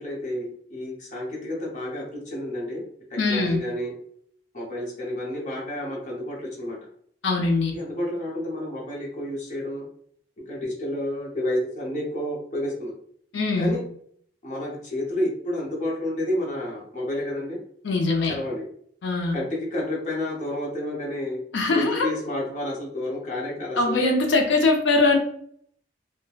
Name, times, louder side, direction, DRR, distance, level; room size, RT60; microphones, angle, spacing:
voice 1, 0.0-2.8 3.1-3.9 4.5-6.8 7.7-9.9 10.5-12.9 13.6-13.8 14.4-17.6 18.3-18.6 19.3-21.4 21.7-24.0, left 1 dB, 40° left, -2 dB, 0.7 m, -30 dB
voice 2, 3.2-3.6 7.2-7.7 13.3-13.8 17.8-18.4 19.0-19.4 21.5-22.1 23.8-25.2, left 3 dB, 85° left, 2 dB, 0.5 m, -22 dB
3.1 x 2.1 x 2.3 m, 0.64 s
head